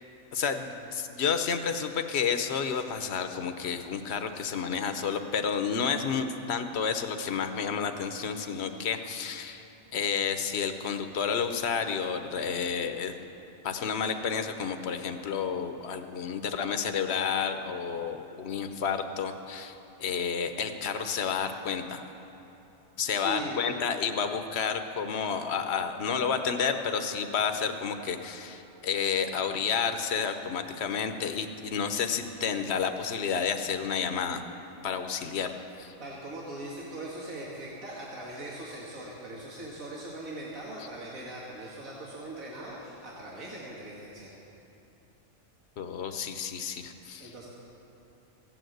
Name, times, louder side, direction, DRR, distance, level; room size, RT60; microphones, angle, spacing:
voice 1, 0.3-9.6 9.9-13.1 13.6-22.0 23.0-34.4 34.8-35.9 40.8-40.9 45.8-47.3, left 6 dB, 55° left, 7 dB, 1.0 m, -30 dB
voice 2, 23.1-23.7 36.0-44.3 47.2-47.5, right 1 dB, 85° right, -5 dB, 2.2 m, -40 dB
15.5 x 9.2 x 7.8 m, 2.9 s
omnidirectional pair, 1.4 m